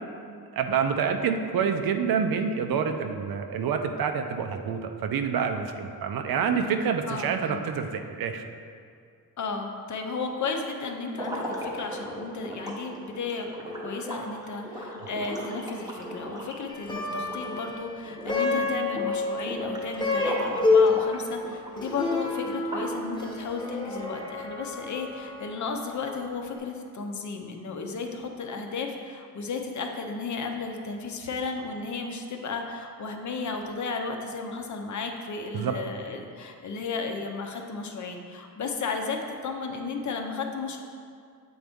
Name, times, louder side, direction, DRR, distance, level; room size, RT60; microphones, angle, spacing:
voice 1, 0.5-8.4 35.5-35.7, right 6 dB, 70° right, 6 dB, 0.5 m, -27 dB
voice 2, 7.0-7.6 9.4-39.2 39.4-40.8, left 4 dB, 50° left, 4 dB, 0.6 m, -34 dB
sound 1, 11.1-17.8 18.1-18.6 18.9-20.5 20.9-23.1, equal, 10° right, 0.7 m, -37 dB
Plucked string instrument, 16.7-26.1, left 3 dB, 10° left, 1.0 m, -28 dB
7.7 x 3.9 x 3.5 m, 2.3 s
wide cardioid pair, 145°, 37 cm